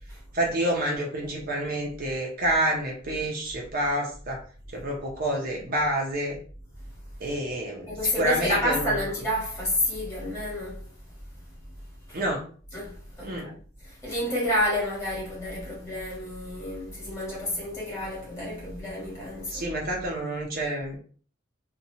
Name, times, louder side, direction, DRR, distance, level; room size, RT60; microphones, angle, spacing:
voice 1, 0.3-4.4 4.7-6.4 7.2-8.9 12.1-12.4 13.2-13.5 19.5-21.0, right 1 dB, 45° right, 0.5 m, -28 dB
voice 2, 7.9-10.8 12.1-12.2 12.7-19.7, left 1 dB, 15° left, 1.2 m, -29 dB
2.7 x 2.2 x 2.7 m
head